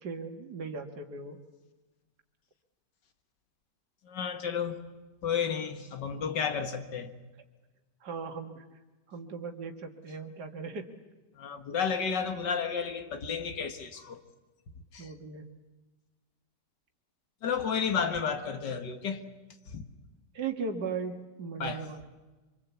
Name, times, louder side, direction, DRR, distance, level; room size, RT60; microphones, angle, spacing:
voice 1, 0.0-1.4 8.0-8.6 9.1-10.9 15.0-15.5 20.3-22.1, right 5 dB, 70° right, 2.4 m, -37 dB
voice 2, 4.1-4.8 5.2-7.1 11.4-14.2 14.9-15.1 17.4-19.2 19.7-19.8 21.6-21.8, left 6 dB, 90° left, 2.3 m, -32 dB
25.5 x 25.0 x 8.4 m
omnidirectional pair, 1.8 m